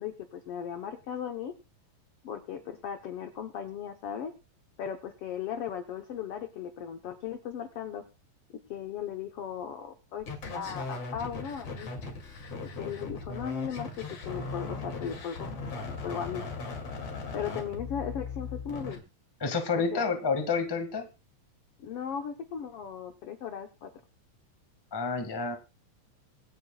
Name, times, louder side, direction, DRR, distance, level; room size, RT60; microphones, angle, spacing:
voice 1, 0.0-1.5 2.2-4.3 4.8-8.0 8.7-11.9 12.8-16.4 17.3-19.0 19.7-20.1 21.8-23.9, left 8 dB, 75° left, 6 dB, 1.3 m, -37 dB
sound 1, 10.2-19.0, left 3 dB, 45° left, 3.2 m, -38 dB
voice 2, 19.4-21.1 24.9-25.5, left 4 dB, 25° left, 6 dB, 0.4 m, -29 dB
25.5 x 9.1 x 2.3 m, 0.29 s
omnidirectional pair, 3.9 m